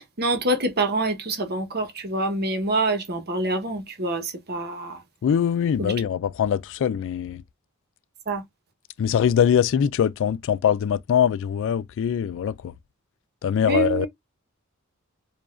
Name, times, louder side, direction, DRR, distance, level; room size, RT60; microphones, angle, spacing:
voice 1, 0.0-5.0 5.8-5.9 8.3-8.4 13.6-14.1, right 2 dB, 50° right, 1.1 m, -26 dB
voice 2, 5.2-7.4 9.0-12.7 13.4-14.1, left 8 dB, 60° left, 0.3 m, -22 dB
4.8 x 2.5 x 2.5 m
head